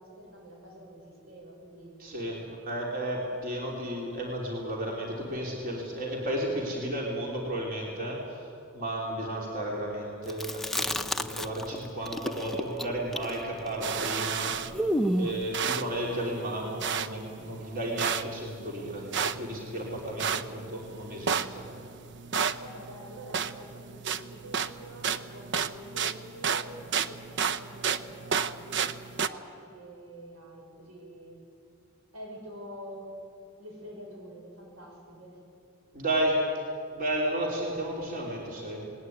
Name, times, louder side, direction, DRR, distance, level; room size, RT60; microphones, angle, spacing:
voice 1, 0.0-2.0 22.6-31.4 32.1-33.1 33.6-35.4, equal, 85° right, 1 dB, 6.2 m, -46 dB
voice 2, 2.0-8.5 8.7-14.7 15.1-21.7 35.9-36.4 36.9-38.9, right 1 dB, 45° right, -2 dB, 3.5 m, -33 dB
Chewing mastication, 10.3-11.8 12.0-15.4, equal, ahead, 0.7 m, -31 dB
sound 1, 13.8-29.3, right 7 dB, 60° right, 0.7 m, -33 dB
19.5 x 19.0 x 9.6 m, 2.5 s
head